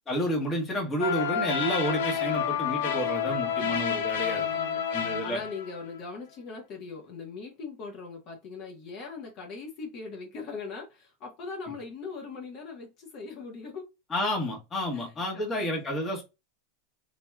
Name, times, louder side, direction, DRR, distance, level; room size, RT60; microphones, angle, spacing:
voice 1, 0.1-4.5 4.9-5.4 14.1-16.2, left 1 dB, 25° left, 1.2 m, -30 dB
sound 1, 1.0-5.8, left 7 dB, 80° left, 0.7 m, -29 dB
voice 2, 4.2-13.9 14.9-15.6, left 4 dB, 50° left, 1.1 m, -41 dB
3.3 x 2.6 x 2.2 m
hypercardioid pair, 115°, 0 cm